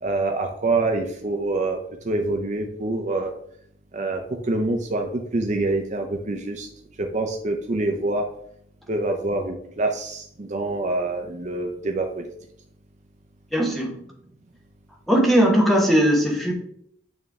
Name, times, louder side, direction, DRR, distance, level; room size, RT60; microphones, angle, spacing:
voice 1, 0.0-3.3 3.9-6.7 7.0-8.2 8.9-12.3, right 2 dB, 40° right, 4 dB, 0.6 m, -26 dB
voice 2, 13.5-14.0 15.1-16.5, equal, ahead, -1 dB, 1.2 m, -19 dB
9.0 x 3.2 x 3.6 m, 0.69 s
head